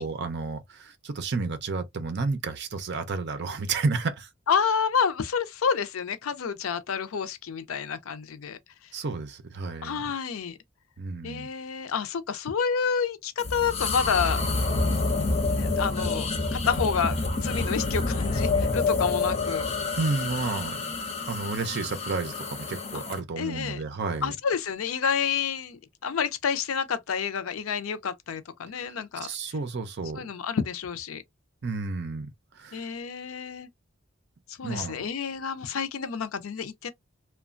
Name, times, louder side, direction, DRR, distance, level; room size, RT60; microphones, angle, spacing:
voice 1, 0.0-4.3 8.9-10.0 11.0-11.5 20.0-24.3 29.2-30.3 31.6-32.3 32.6-32.8 34.6-35.1, right 4 dB, 55° right, 0.6 m, -31 dB
voice 2, 4.5-8.6 9.8-10.6 11.2-14.4 15.5-19.7 22.9-23.0 23.4-23.8 24.2-29.3 30.1-31.2 32.7-33.7 34.5-36.9, left 6 dB, 85° left, 0.5 m, -29 dB
sound 1, 13.4-23.2, left 3 dB, 30° left, 0.5 m, -28 dB
3.0 x 2.2 x 2.4 m
head